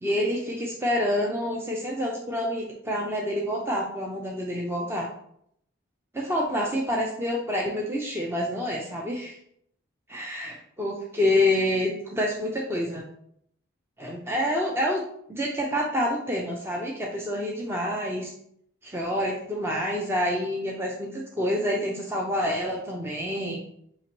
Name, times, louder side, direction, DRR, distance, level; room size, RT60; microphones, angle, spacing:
voice 1, 0.0-5.1 6.1-9.4 10.1-13.0 14.0-15.0 15.3-18.3 18.8-23.6, left 1 dB, 10° right, -2 dB, 0.5 m, -27 dB
5.4 x 2.9 x 3.0 m, 0.69 s
head